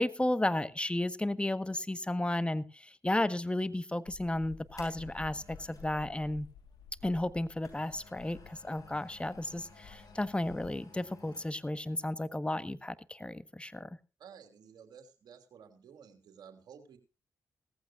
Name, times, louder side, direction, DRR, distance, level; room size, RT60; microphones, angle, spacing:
voice 1, 0.0-6.5 7.0-13.9, left 1 dB, 15° left, 1.3 m, -33 dB
sound 1, 4.1-10.7, left 6 dB, 75° left, 1.6 m, -53 dB
sound 2, 4.2-5.9 7.1-11.8 12.1-12.2, left 3 dB, 55° left, 6.8 m, -57 dB
voice 2, 14.2-17.0, right 7 dB, 70° right, 3.1 m, -53 dB
18.0 x 14.5 x 2.5 m
hypercardioid pair, 40°, 7 cm